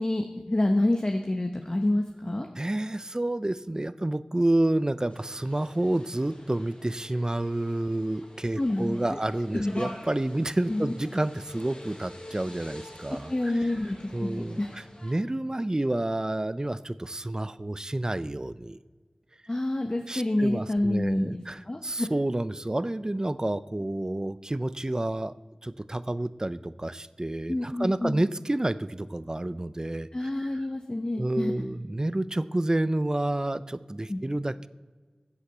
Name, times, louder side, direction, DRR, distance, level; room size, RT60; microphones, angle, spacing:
voice 1, 0.0-2.5 8.6-9.2 9.5-9.9 10.7-10.9 13.3-14.7 19.5-22.1 27.5-28.2 30.1-31.5 34.1-34.2, left 1 dB, 45° left, 4 dB, 1.1 m, -28 dB
voice 2, 2.6-13.5 14.1-18.8 20.1-25.3 25.6-30.3 31.2-34.7, right 1 dB, 35° right, 15 dB, 0.6 m, -29 dB
sound 1, 5.1-15.1, left 1 dB, 85° left, 5.0 m, -46 dB
14.5 x 8.5 x 7.9 m, 1.4 s
wide cardioid pair, 45°, 2 cm